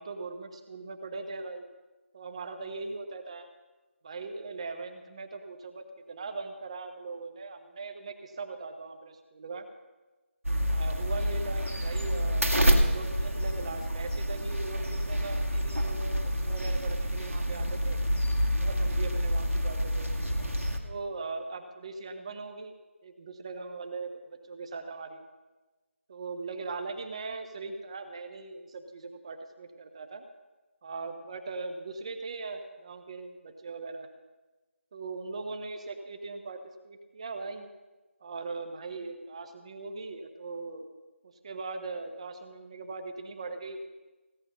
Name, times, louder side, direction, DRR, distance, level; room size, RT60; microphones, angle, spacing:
voice 1, 0.0-1.6 2.1-3.5 4.0-9.7 10.7-18.0 18.6-20.1 20.8-22.7 23.0-25.2 26.1-30.3 30.8-34.1 34.9-37.7 38.2-40.9 41.2-43.8, right 3 dB, 25° right, 7 dB, 1.1 m, -40 dB
sound 1, 10.4-20.8, equal, 80° right, 2.2 m, -28 dB
16.5 x 9.6 x 5.5 m, 1.2 s
figure-of-eight pair, 160°, 7 cm